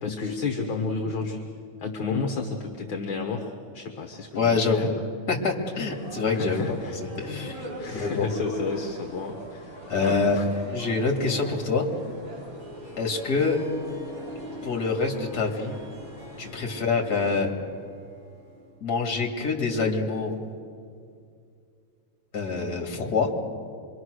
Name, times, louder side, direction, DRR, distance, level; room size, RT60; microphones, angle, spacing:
voice 1, 0.0-1.4 1.8-4.9 6.3-7.0 7.3-10.5 16.7-16.9, left 4 dB, 50° left, 3 dB, 1.8 m, -32 dB
voice 2, 4.3-4.9 5.3-8.3 9.9-10.4 10.7-11.9 13.0-13.6 14.6-15.8 16.4-17.5 18.8-20.3 22.3-23.3, left 4 dB, 35° left, 1 dB, 2.8 m, -26 dB
sound 1, 5.8-16.5, right 1 dB, 45° right, 5.9 m, -42 dB
Harp, 12.3-18.8, left 1 dB, 25° right, 6.5 m, -44 dB
26.0 x 23.5 x 6.4 m, 2.3 s
omnidirectional pair, 3.3 m